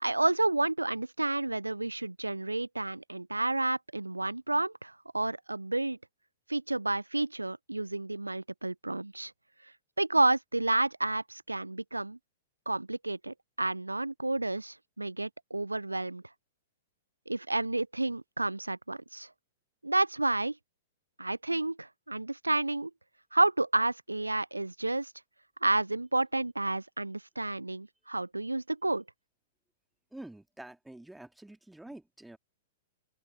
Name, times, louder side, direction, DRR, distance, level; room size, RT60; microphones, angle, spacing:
voice 1, 0.0-6.0 6.5-9.3 10.0-12.2 12.7-16.2 17.3-19.3 19.8-20.6 21.2-22.9 23.3-25.1 25.6-29.0, right 2 dB, 80° right, 0.5 m, -30 dB
voice 2, 30.1-32.4, right 1 dB, 5° right, 2.1 m, -47 dB
open air
figure-of-eight pair, 105°, 0 cm